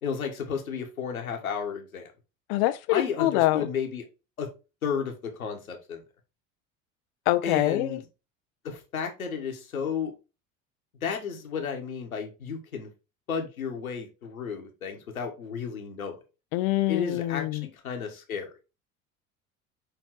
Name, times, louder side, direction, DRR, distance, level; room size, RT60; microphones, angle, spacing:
voice 1, 0.0-2.1 2.9-4.1 4.4-4.5 4.8-6.0 7.4-8.0 8.6-10.1 11.0-12.9 13.3-16.2 16.9-18.5, left 6 dB, 80° left, 1.4 m, -32 dB
voice 2, 2.5-3.7 7.3-8.0 16.5-17.7, left 16 dB, 50° left, 0.5 m, -25 dB
6.5 x 3.5 x 4.6 m
figure-of-eight pair, 70°, 41 cm